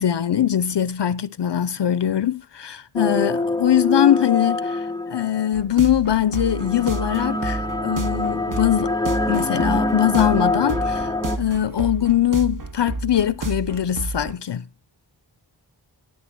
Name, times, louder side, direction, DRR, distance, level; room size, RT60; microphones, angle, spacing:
voice 1, 0.0-8.9 9.3-14.6, left 10 dB, 70° left, 0.6 m, -22 dB
sound 1, 3.0-5.5 6.4-11.4, left 2 dB, 10° left, 0.5 m, -24 dB
sound 2, 5.5-14.3, right 3 dB, 45° right, 0.9 m, -31 dB
13.0 x 7.6 x 4.5 m
wide cardioid pair, 65°, 44 cm